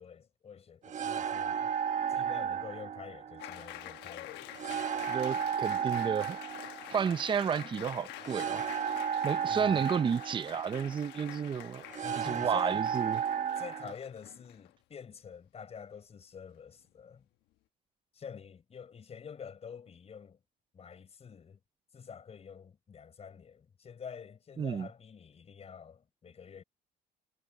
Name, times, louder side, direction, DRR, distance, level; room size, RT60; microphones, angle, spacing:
voice 1, 0.0-1.7 2.1-4.6 9.5-9.9 12.0-12.8 13.6-17.2 18.1-20.4 20.7-21.6 21.9-26.6, left 7 dB, 40° left, 4.8 m, -47 dB
sound 1, 0.8-13.9, right 8 dB, 45° right, 1.3 m, -34 dB
Applause, 3.4-14.7, left 16 dB, 90° left, 1.2 m, -47 dB
voice 2, 5.1-6.4 6.9-8.6 9.2-11.8 12.2-13.2 24.6-24.9, right 7 dB, 30° right, 0.6 m, -31 dB
cardioid pair, 110°, 17 cm